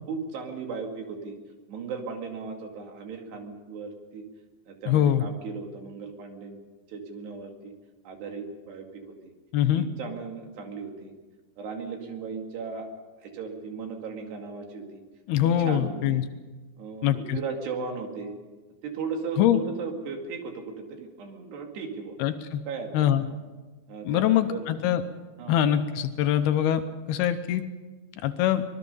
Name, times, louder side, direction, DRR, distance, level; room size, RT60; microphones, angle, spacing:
voice 1, 0.1-1.4 1.7-4.2 4.7-6.6 6.9-7.7 8.1-9.3 9.7-11.1 11.6-12.9 13.2-15.0 15.4-16.2 16.8-18.4 18.8-22.2 22.7-22.9 23.9-24.7 25.4-25.6, right 5 dB, 70° right, 3 dB, 4.2 m, -36 dB
voice 2, 4.9-5.2 9.5-9.9 15.3-16.2 17.0-17.4 19.4-19.6 22.2-22.6 22.9-23.3 24.1-25.0 25.5-26.8 27.1-27.6 28.2-28.6, left 11 dB, 75° left, 9 dB, 2.5 m, -23 dB
24.5 x 20.0 x 5.5 m, 1.3 s
omnidirectional pair, 5.2 m